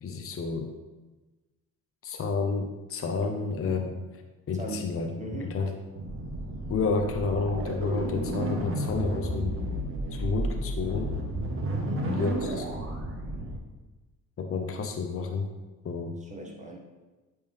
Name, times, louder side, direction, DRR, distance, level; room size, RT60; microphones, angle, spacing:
voice 1, 0.0-0.7 2.0-4.0 4.5-5.1 5.5-5.7 6.7-9.7 10.1-11.1 12.1-12.7 14.4-15.5 15.8-16.2, left 4 dB, 35° left, 4 dB, 0.8 m, -30 dB
voice 2, 4.5-4.9 5.2-5.6 11.7-12.1 16.2-16.8, right 1 dB, 20° right, 0 dB, 1.8 m, -39 dB
sound 1, 5.9-13.6, right 1 dB, 35° right, 1.3 m, -32 dB
8.3 x 4.6 x 3.5 m, 1.2 s
supercardioid pair, 70°, 38 cm